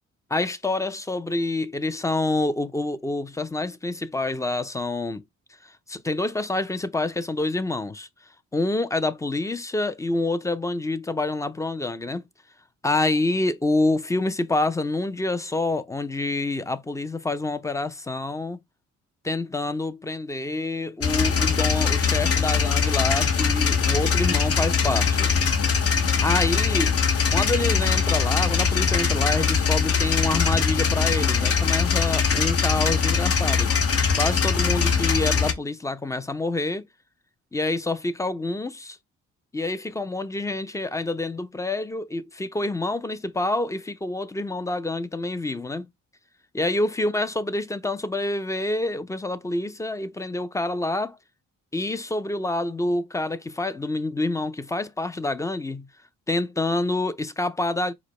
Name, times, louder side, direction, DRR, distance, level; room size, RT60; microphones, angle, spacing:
voice 1, 0.3-5.2 5.6-8.1 8.5-12.2 12.8-18.6 19.2-25.3 26.2-27.0 27.3-33.7 34.2-36.9 37.5-39.0 39.5-45.9 46.5-51.2 51.7-55.9 56.3-57.9, left 2 dB, 10° left, 0.5 m, -27 dB
sound 1, 21.0-35.5, left 6 dB, 50° left, 0.9 m, -22 dB
4.8 x 2.1 x 4.2 m
cardioid pair, 90°, 30 cm